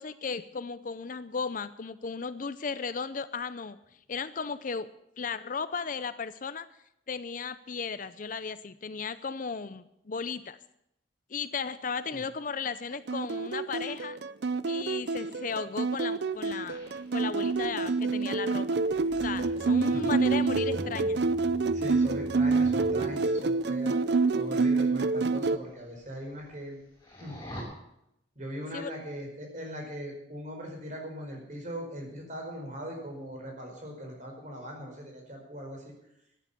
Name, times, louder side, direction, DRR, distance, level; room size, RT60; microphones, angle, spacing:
voice 1, 0.0-3.8 4.1-4.9 5.2-6.7 7.1-10.6 11.3-14.2 14.7-16.8 17.1-18.7 19.2-21.2 28.7-28.9, left 5 dB, 45° left, 14 dB, 0.5 m, -35 dB
sound 1, 13.1-25.6, right 3 dB, 60° right, 0.5 m, -27 dB
sound 2, 16.4-23.3 24.3-24.7 25.1-25.2 25.7-25.8 26.0-26.7 27.0-27.6, equal, 20° left, 6.4 m, -44 dB
voice 2, 21.7-24.0 24.3-26.8 27.2-27.3 28.3-35.9, equal, 40° right, 1 dB, 4.9 m, -40 dB
13.5 x 10.0 x 8.3 m, 0.80 s
head